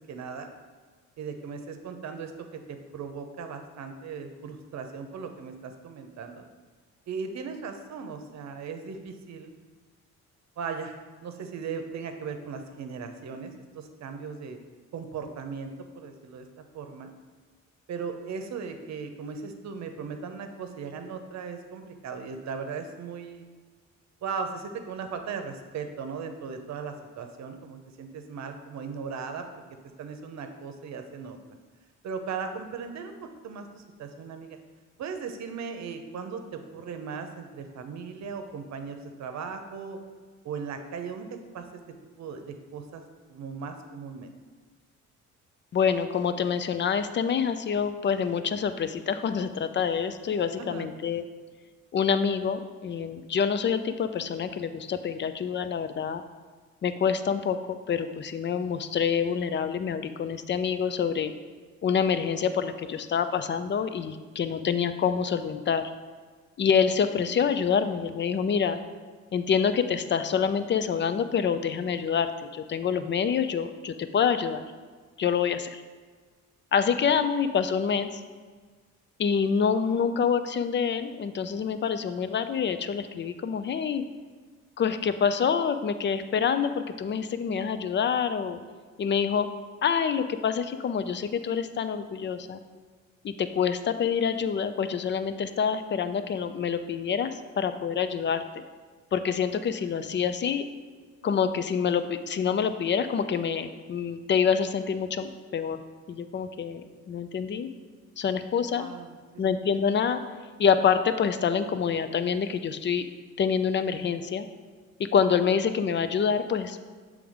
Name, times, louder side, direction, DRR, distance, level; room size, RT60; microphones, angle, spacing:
voice 1, 0.1-0.5 1.2-6.5 7.1-9.5 10.6-14.6 14.9-16.5 16.7-17.1 17.9-23.5 24.2-29.5 30.0-31.4 32.0-34.6 35.0-40.0 40.4-41.3 41.5-41.6 42.2-43.0 43.3-44.3 50.6-50.9 108.7-109.2, right 5 dB, 65° right, 6 dB, 0.8 m, -37 dB
voice 2, 45.7-51.2 51.9-56.2 56.8-61.3 61.8-65.8 66.6-68.8 69.3-74.6 75.2-75.8 76.7-78.2 79.2-84.0 84.8-88.6 89.0-89.5 89.8-92.6 93.2-98.4 99.1-100.7 101.2-105.8 106.1-107.7 108.2-108.9 109.4-110.2 110.6-113.1 113.4-114.5 115.1-116.8, left 7 dB, 40° left, 11 dB, 0.5 m, -26 dB
7.0 x 3.5 x 5.0 m, 1.5 s
cardioid pair, 90°, 30 cm